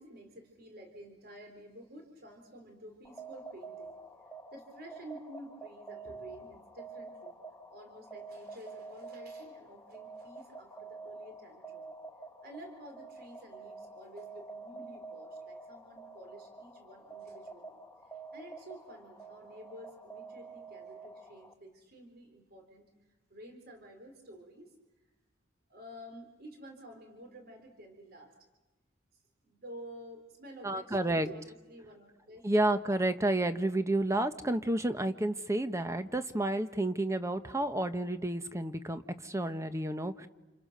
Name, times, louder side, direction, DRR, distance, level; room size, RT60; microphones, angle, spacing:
voice 1, 0.0-4.0 4.5-7.4 7.7-11.9 12.4-17.8 18.3-22.9 23.3-24.7 25.7-28.3 29.4-32.5, equal, 55° right, 4 dB, 4.1 m, -51 dB
sound 1, 3.0-21.5, right 3 dB, 10° left, 1.6 m, -48 dB
voice 2, 30.6-31.3 32.4-40.3, right 1 dB, 15° right, 9 dB, 1.1 m, -30 dB
29.5 x 28.5 x 6.7 m, 1.1 s
head